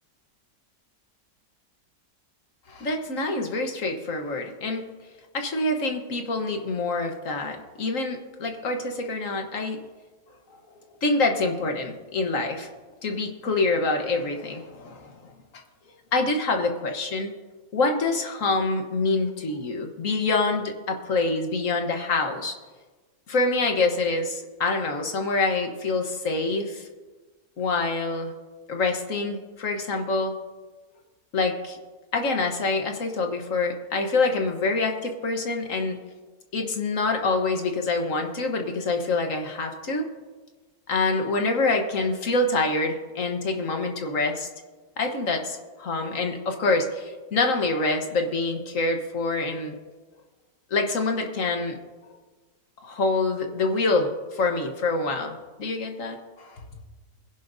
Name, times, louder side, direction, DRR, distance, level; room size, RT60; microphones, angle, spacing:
voice 1, 2.7-4.9 5.3-9.8 11.0-12.7 13.0-15.1 16.1-17.3 17.7-22.6 23.3-26.9 27.6-28.3 28.7-30.3 31.3-31.8 32.1-36.0 36.5-40.0 40.9-44.5 45.0-49.7 50.7-51.7 52.8-56.6, left 3 dB, 50° left, 4 dB, 1.5 m, -26 dB
22.0 x 11.0 x 2.7 m, 1.3 s
omnidirectional pair, 1.8 m